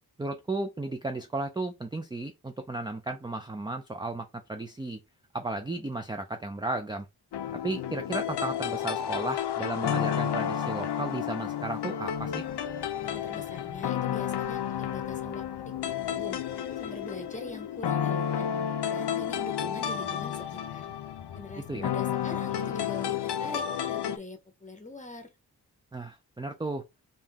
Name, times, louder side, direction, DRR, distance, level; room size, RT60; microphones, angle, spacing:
voice 1, 0.2-5.0 5.3-7.1 7.6-12.4 21.7-21.9 25.9-26.8, right 2 dB, 10° right, 0.4 m, -34 dB
sound 1, 7.3-24.2, left 9 dB, 90° left, 0.6 m, -31 dB
voice 2, 12.9-16.4 16.8-18.5 18.9-20.9 21.3-25.3, left 2 dB, 20° left, 0.9 m, -43 dB
3.6 x 2.8 x 3.5 m
wide cardioid pair, 140°, 39 cm